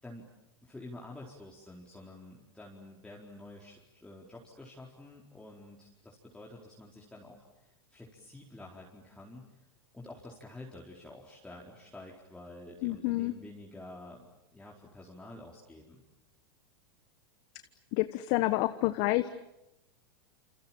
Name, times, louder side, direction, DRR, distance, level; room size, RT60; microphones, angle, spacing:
voice 1, 0.6-9.6 9.9-16.0, left 2 dB, 5° left, -3 dB, 4.5 m, -49 dB
voice 2, 12.8-13.3 17.9-19.3, left 18 dB, 55° left, 11 dB, 1.3 m, -28 dB
29.0 x 27.5 x 7.5 m, 0.89 s
hypercardioid pair, 105°, 13 cm